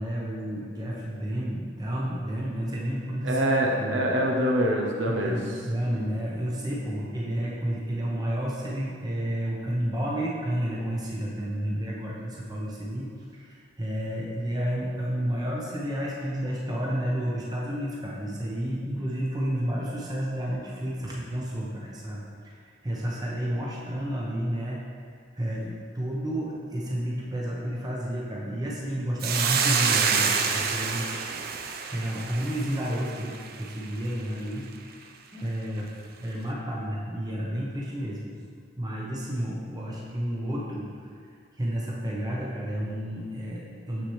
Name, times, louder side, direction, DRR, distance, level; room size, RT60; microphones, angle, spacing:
voice 1, 0.0-3.4 3.8-4.0 5.1-24.8 25.4-31.1 31.9-35.9 36.2-38.3 38.8-41.1 41.6-44.0, equal, 20° right, -5 dB, 0.9 m, -31 dB
voice 2, 3.2-5.4, equal, 85° right, 0 dB, 0.8 m, -24 dB
Hiss, 29.2-33.7, right 6 dB, 55° right, 0.5 m, -27 dB
7.3 x 6.8 x 3.2 m, 2.1 s
head